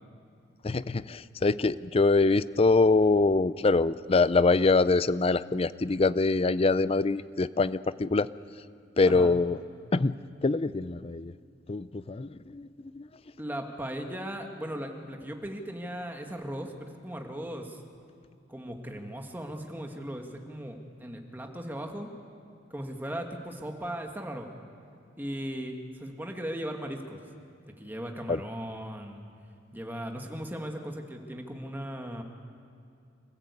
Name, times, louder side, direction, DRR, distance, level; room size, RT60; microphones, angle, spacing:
voice 1, 0.6-8.3 9.0-9.6 9.9-10.1 10.4-11.3 11.7-13.1 28.3-28.4, left 3 dB, 30° left, 16 dB, 0.5 m, -24 dB
voice 2, 13.4-17.8 18.5-22.1 22.7-24.5 25.2-27.2 27.6-29.2 29.7-32.2, equal, 10° right, 3 dB, 1.8 m, -37 dB
27.5 x 15.0 x 8.4 m, 2.4 s
head